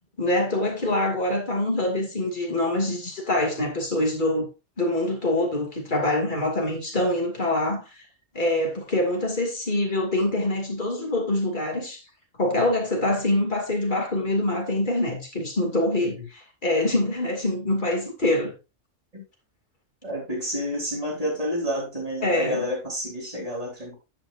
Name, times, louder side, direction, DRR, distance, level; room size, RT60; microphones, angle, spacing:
voice 1, 0.2-4.5 4.8-7.8 8.3-12.0 12.4-18.5 22.2-22.7, left 1 dB, 40° left, 2.9 m, -25 dB
voice 2, 20.0-23.9, equal, 30° right, 4.3 m, -29 dB
10.0 x 8.8 x 2.6 m
omnidirectional pair, 1.3 m